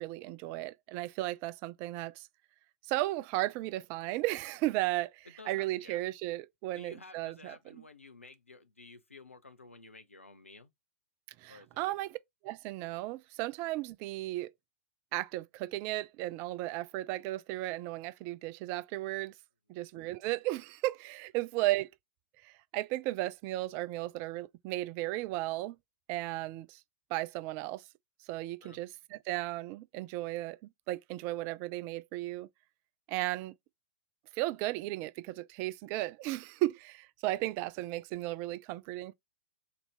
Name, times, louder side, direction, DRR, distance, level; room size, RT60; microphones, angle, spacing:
voice 1, 0.0-2.3 2.9-7.6 11.4-12.2 12.4-14.5 15.1-19.3 19.7-21.9 22.4-25.8 26.1-26.8 27.1-27.8 28.3-32.5 33.1-33.5 34.4-39.1, right 17 dB, 35° right, 0.4 m, -35 dB
voice 2, 5.4-6.0 6.7-10.7 11.5-11.9 28.6-28.8, left 2 dB, 85° left, 0.7 m, -53 dB
4.0 x 3.0 x 3.4 m
figure-of-eight pair, 105°, 7 cm